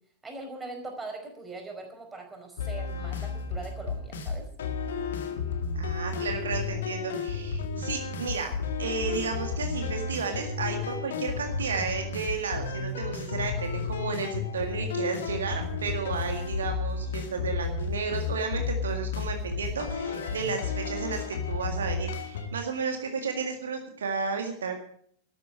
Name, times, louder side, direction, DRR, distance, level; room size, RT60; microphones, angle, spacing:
voice 1, 0.2-4.5, right 3 dB, 15° right, 3 dB, 4.8 m, -41 dB
sound 1, 2.6-22.5, left 5 dB, 60° left, 2.0 m, -32 dB
voice 2, 5.7-24.8, right 5 dB, 65° right, 4 dB, 1.9 m, -33 dB
13.0 x 9.9 x 8.6 m, 0.62 s
figure-of-eight pair, 90°, 0 cm